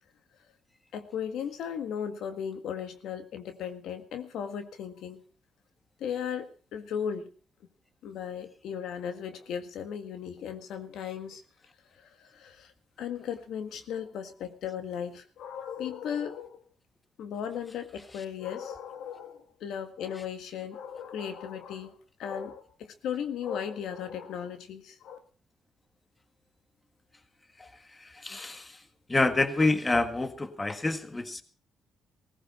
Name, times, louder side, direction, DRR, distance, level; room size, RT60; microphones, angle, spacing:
voice 1, 0.9-5.2 6.0-7.3 8.0-11.4 11.9-12.7 13.0-16.6 17.2-21.9 22.2-25.2, left 8 dB, 80° left, 8 dB, 1.7 m, -36 dB
voice 2, 28.0-28.8 29.1-31.4, left 2 dB, 20° left, 10 dB, 1.6 m, -27 dB
17.5 x 15.5 x 4.2 m, 0.37 s
cardioid pair, 85°, 0 cm